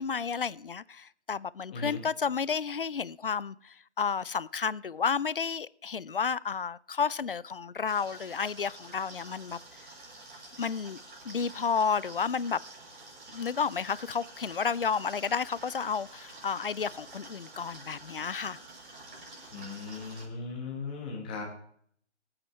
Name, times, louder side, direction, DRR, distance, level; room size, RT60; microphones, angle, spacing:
voice 1, 0.0-9.9 10.6-11.0 11.2-12.6 13.3-18.6, left 6 dB, 50° left, 0.4 m, -31 dB
sound 1, 7.8-20.3, right 2 dB, 45° right, 6.6 m, -49 dB
voice 2, 19.5-21.5, left 4 dB, 10° left, 1.1 m, -38 dB
25.5 x 8.8 x 3.2 m
figure-of-eight pair, 165°, 35 cm